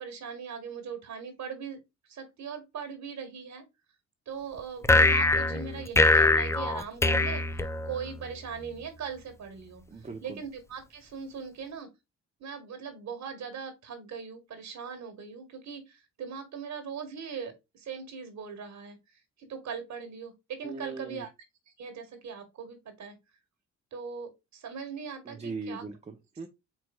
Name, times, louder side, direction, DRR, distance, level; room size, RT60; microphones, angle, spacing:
voice 1, 0.0-1.8 2.0-3.6 4.3-7.4 7.8-11.9 12.4-21.3 21.7-23.2 23.9-25.8, right 6 dB, 70° right, 1.5 m, -40 dB
sound 1, 4.8-8.3, left 2 dB, 10° left, 0.4 m, -23 dB
voice 2, 9.9-10.4 20.6-21.2 25.3-26.5, right 3 dB, 20° right, 0.7 m, -40 dB
4.6 x 4.3 x 2.2 m
cardioid pair, 90°, 30 cm